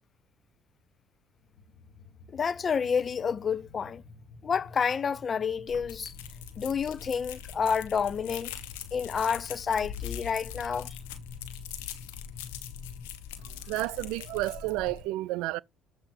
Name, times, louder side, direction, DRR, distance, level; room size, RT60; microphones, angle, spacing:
sound 1, 1.4-13.1, left 4 dB, 55° left, 1.1 m, -50 dB
voice 1, 2.3-4.0 4.4-6.1 6.6-8.6 8.9-10.9, left 6 dB, 40° left, 0.4 m, -29 dB
sound 2, 5.7-15.0, left 9 dB, 90° left, 1.0 m, -42 dB
voice 2, 13.4-15.6, right 18 dB, 80° right, 0.3 m, -31 dB
7.9 x 2.9 x 6.1 m
supercardioid pair, 70°, 0 cm